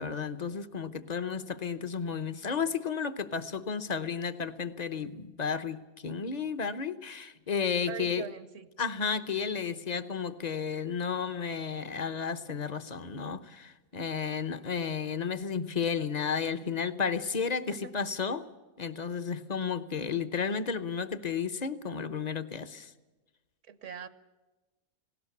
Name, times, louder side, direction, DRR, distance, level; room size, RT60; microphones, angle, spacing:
voice 1, 0.0-8.2 8.8-18.4 18.8-22.9, left 6 dB, 35° left, 12 dB, 0.7 m, -33 dB
voice 2, 7.9-8.7 17.7-17.9 23.7-24.1, right 8 dB, 60° right, 14 dB, 1.1 m, -41 dB
19.0 x 17.5 x 8.4 m, 1.2 s
omnidirectional pair, 1.6 m